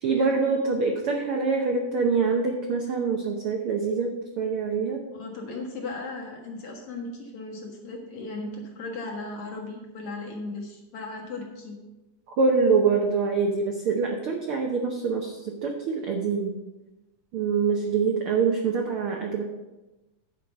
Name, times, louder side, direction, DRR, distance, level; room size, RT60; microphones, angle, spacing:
voice 1, 0.0-5.0 12.4-16.5 17.3-19.4, right 5 dB, 85° right, 2 dB, 1.2 m, -25 dB
voice 2, 5.1-11.8, left 2 dB, 55° left, 0 dB, 2.0 m, -37 dB
9.8 x 4.8 x 7.0 m, 1.1 s
omnidirectional pair, 3.7 m